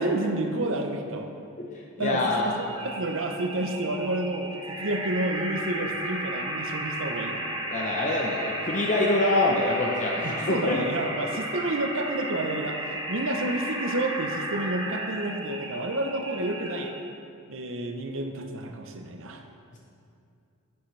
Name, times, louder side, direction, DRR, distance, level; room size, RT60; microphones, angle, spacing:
voice 1, 0.0-1.4 2.0-7.5 10.2-16.9 17.5-19.4, right 1 dB, 60° right, 5 dB, 0.8 m, -30 dB
voice 2, 1.6-2.5 7.7-10.8, left 2 dB, 35° left, -1 dB, 0.7 m, -25 dB
sound 1, 2.4-17.0, right 1 dB, 20° right, 1.5 m, -34 dB
11.0 x 9.2 x 3.3 m, 2.5 s
head